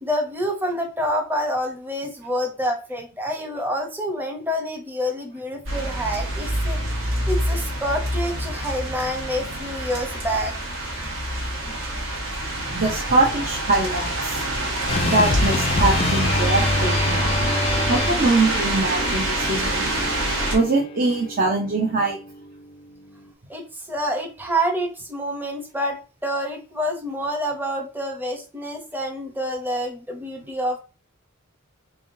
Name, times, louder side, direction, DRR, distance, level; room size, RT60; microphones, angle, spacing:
voice 1, 0.0-6.8 7.3-10.5 23.5-30.8, equal, 10° right, 2 dB, 0.7 m, -27 dB
sound 1, 5.7-20.6, right 1 dB, 65° right, 1.2 m, -26 dB
voice 2, 12.6-14.4 15.0-17.3 17.9-19.9 20.5-22.2, right 2 dB, 45° right, -1 dB, 0.7 m, -23 dB
sound 2, 14.9-23.2, left 2 dB, 30° left, 0.3 m, -27 dB
3.6 x 3.4 x 2.6 m, 0.34 s
head